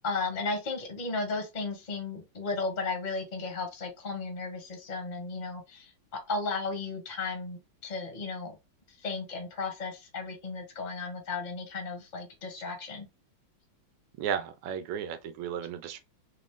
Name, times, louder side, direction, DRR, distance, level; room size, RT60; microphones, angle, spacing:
voice 1, 0.0-5.9 6.3-8.6 9.0-13.1, left 3 dB, 30° left, 0.9 m, -34 dB
voice 2, 14.2-16.0, right 8 dB, 85° right, 1.5 m, -34 dB
4.0 x 2.5 x 3.5 m
omnidirectional pair, 2.3 m